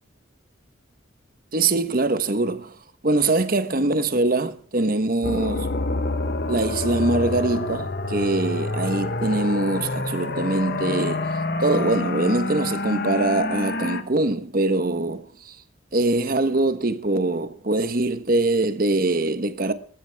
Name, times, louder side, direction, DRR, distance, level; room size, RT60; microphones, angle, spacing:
voice 1, 1.5-2.7 3.0-5.7 6.5-15.6 15.9-19.7, right 2 dB, 45° right, 1.1 m, -23 dB
sound 1, 5.2-14.0, left 2 dB, 50° left, 1.2 m, -27 dB
19.5 x 15.0 x 3.5 m
head